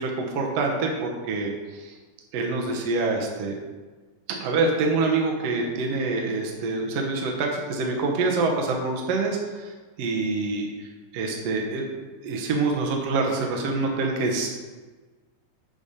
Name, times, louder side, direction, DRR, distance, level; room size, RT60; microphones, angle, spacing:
voice 1, 0.0-1.9 2.3-3.5 4.3-9.7 10.0-10.9 11.1-11.8 12.2-14.5, right 3 dB, 80° right, 0 dB, 1.4 m, -26 dB
8.9 x 5.0 x 4.1 m, 1.3 s
omnidirectional pair, 4.3 m